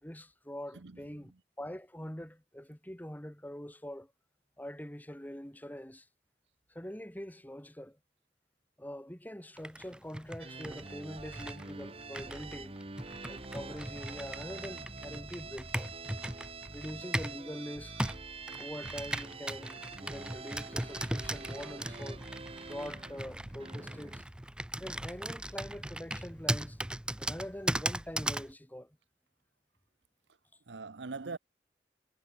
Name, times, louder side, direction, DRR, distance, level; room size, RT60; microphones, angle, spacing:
voice 1, 0.0-1.3 1.6-4.1 4.6-6.1 6.7-8.0 8.8-12.7 13.2-15.9 16.7-18.0 18.6-22.2 22.7-24.3 24.8-26.8 27.2-29.0, equal, 10° left, 2.3 m, -44 dB
voice 2, 0.7-1.4 30.7-31.4, right 4 dB, 85° right, 0.9 m, -43 dB
Computer keyboard, 9.6-17.4 18.0-28.5, right 1 dB, 5° right, 0.6 m, -38 dB
sound 1, 10.4-24.2, right 4 dB, 35° right, 1.4 m, -45 dB
head